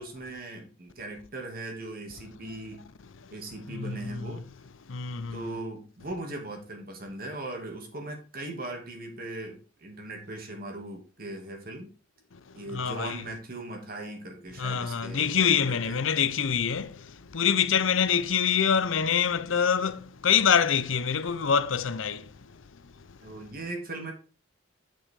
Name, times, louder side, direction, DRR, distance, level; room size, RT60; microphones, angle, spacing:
voice 1, 0.0-2.8 3.3-4.4 5.3-11.9 12.5-16.0 23.2-24.1, right 2 dB, 50° right, 2.6 m, -39 dB
voice 2, 3.7-4.2 4.9-5.5 12.3-12.4 12.7-13.2 14.6-22.3, left 7 dB, 85° left, 0.7 m, -25 dB
8.6 x 6.2 x 4.8 m
head